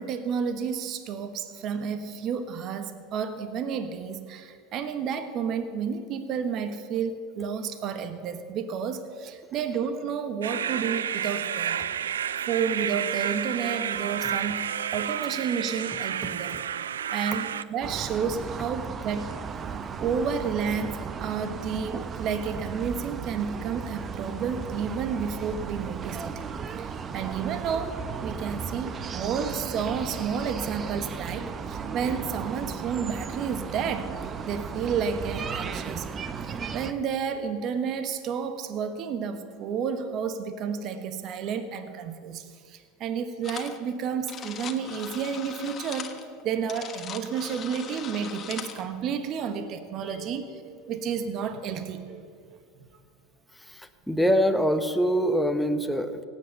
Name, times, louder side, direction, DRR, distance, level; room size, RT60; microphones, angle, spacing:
voice 1, 0.0-11.8 12.5-14.6 14.9-16.6 17.1-19.3 20.0-26.4 26.8-34.2 34.5-36.1 36.7-52.6, right 6 dB, 50° right, 9 dB, 1.2 m, -31 dB
sound 1, 10.4-17.6, right 9 dB, 90° right, 0.3 m, -30 dB
sound 2, 17.8-36.9, right 6 dB, 35° right, 0.8 m, -35 dB
sound 3, 43.4-43.8 44.1-48.8, left 7 dB, 40° left, 1.3 m, -40 dB
voice 2, 53.7-56.3, equal, ahead, 7 dB, 1.1 m, -24 dB
17.5 x 8.5 x 6.6 m, 2.2 s
hypercardioid pair, 90°, 0 cm